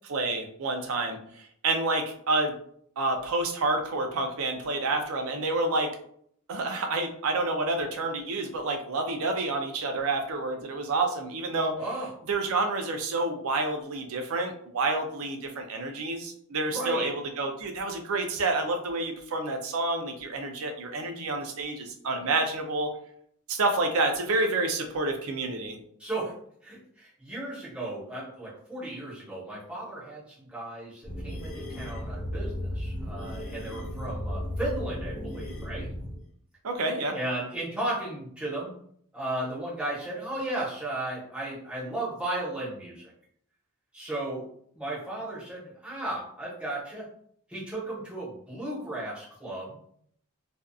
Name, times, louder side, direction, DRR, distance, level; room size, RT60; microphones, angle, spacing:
voice 1, 0.1-2.6 3.0-5.9 6.5-11.7 12.3-22.9 23.5-25.8 36.6-37.1, right 2 dB, 65° right, 4 dB, 0.5 m, -29 dB
voice 2, 16.7-17.1 26.0-26.3 26.6-35.9 36.9-38.7 39.1-43.0 43.9-44.5 44.7-47.0 47.5-49.8, right 1 dB, 5° right, -8 dB, 1.0 m, -35 dB
sound 1, 31.0-36.2, left 1 dB, 35° left, 0.5 m, -35 dB
2.6 x 2.4 x 2.3 m, 0.65 s
head